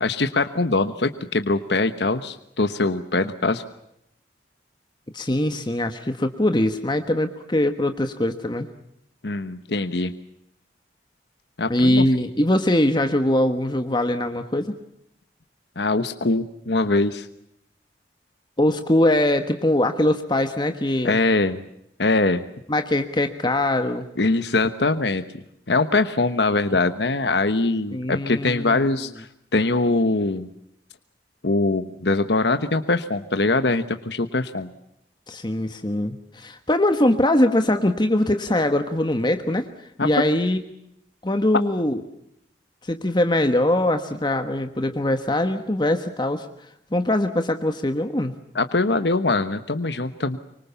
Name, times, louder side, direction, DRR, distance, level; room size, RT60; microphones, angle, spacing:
voice 1, 0.0-3.6 9.2-10.1 11.6-12.0 15.8-17.3 21.0-21.6 22.0-22.4 24.2-25.2 25.7-29.3 29.5-30.5 31.4-34.7 40.0-40.3 48.5-50.4, left 2 dB, 70° left, 9 dB, 1.2 m, -22 dB
voice 2, 5.1-8.7 11.7-14.8 18.6-21.2 22.7-24.1 27.9-28.9 35.3-40.6 41.2-42.0 42.8-46.5 46.9-48.3, left 1 dB, 25° left, 7 dB, 1.3 m, -22 dB
25.0 x 25.0 x 7.0 m, 0.78 s
head